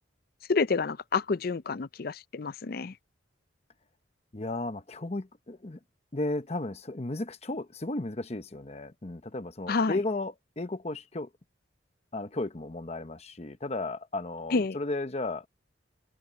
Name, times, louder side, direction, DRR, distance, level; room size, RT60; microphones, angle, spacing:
voice 1, 0.5-2.9 9.7-10.0 14.5-14.8, left 4 dB, 50° left, 0.5 m, -28 dB
voice 2, 4.3-5.8 6.1-11.3 12.1-15.5, left 2 dB, 35° left, 1.0 m, -34 dB
head